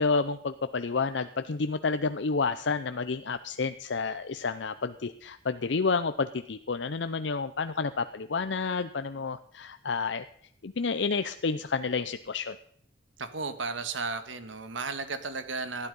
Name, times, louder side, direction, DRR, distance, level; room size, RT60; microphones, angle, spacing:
voice 1, 0.0-10.2 10.6-12.6, left 4 dB, 65° left, 10 dB, 0.6 m, -30 dB
voice 2, 13.2-15.9, right 4 dB, 80° right, 10 dB, 1.7 m, -34 dB
19.5 x 13.0 x 5.4 m, 0.66 s
head